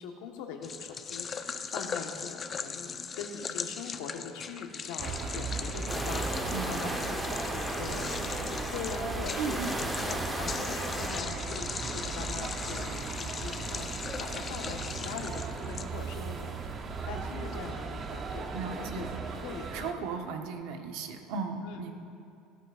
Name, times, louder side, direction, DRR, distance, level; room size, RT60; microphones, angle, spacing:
voice 1, 0.0-9.6 10.1-13.9 14.2-16.5 17.0-19.1 19.4-20.2 21.6-21.8, left 6 dB, 80° left, 3 dB, 1.3 m, -42 dB
sound 1, 0.6-16.2, left 6 dB, 25° left, 0.5 m, -39 dB
sound 2, 5.0-19.9, right 4 dB, 30° right, 0.8 m, -37 dB
sound 3, 5.9-11.2, right 1 dB, 5° right, 1.0 m, -35 dB
voice 2, 6.5-7.1 9.4-9.7 18.5-19.1 19.7-22.0, right 5 dB, 70° right, 5 dB, 1.0 m, -36 dB
16.0 x 13.0 x 2.5 m, 2.5 s
cardioid pair, 145°, 0 cm